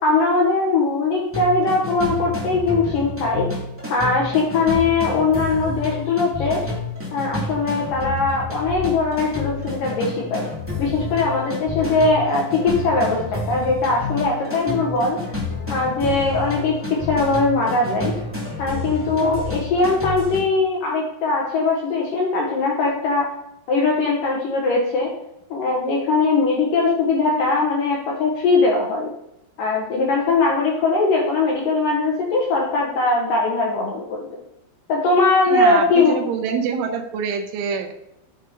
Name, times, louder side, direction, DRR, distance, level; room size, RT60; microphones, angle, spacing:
voice 1, 0.0-3.4 3.9-6.7 7.1-10.5 10.8-15.2 15.7-16.7 17.1-18.1 18.6-23.2 23.7-25.1 25.5-29.1 29.6-34.3 34.9-36.2, left 3 dB, 75° left, -1 dB, 2.0 m, -20 dB
sound 1, 1.3-20.4, left 3 dB, 5° right, 0.9 m, -29 dB
voice 2, 35.5-37.9, right 6 dB, 80° right, 4 dB, 3.4 m, -25 dB
8.1 x 6.5 x 4.2 m, 0.84 s
omnidirectional pair, 5.5 m